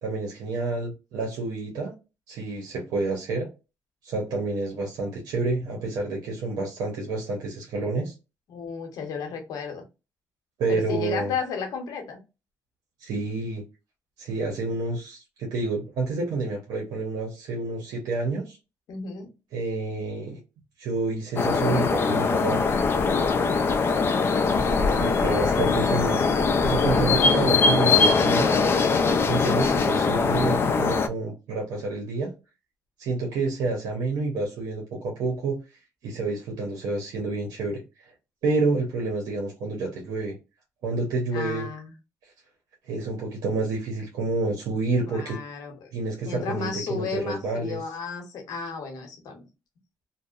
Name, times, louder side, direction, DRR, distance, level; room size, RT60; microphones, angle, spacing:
voice 1, 0.0-1.9 2.3-3.5 4.0-8.1 10.6-11.3 13.0-13.6 14.2-18.6 19.5-20.4 20.8-22.6 25.0-26.2 26.6-28.6 29.3-32.3 33.0-35.6 36.0-38.1 38.4-40.4 40.8-41.7 42.9-45.4 45.9-47.8, right 3 dB, 90° right, 0 dB, 0.7 m, -29 dB
voice 2, 8.5-9.8 10.7-12.2 18.9-19.3 25.0-25.8 26.8-27.2 41.3-41.9 45.1-45.9 46.2-49.4, left 5 dB, 75° left, 4 dB, 0.8 m, -33 dB
sound 1, 21.4-31.1, left 4 dB, 40° left, 0.3 m, -22 dB
2.6 x 2.0 x 2.4 m, 0.28 s
cardioid pair, 110°, 6 cm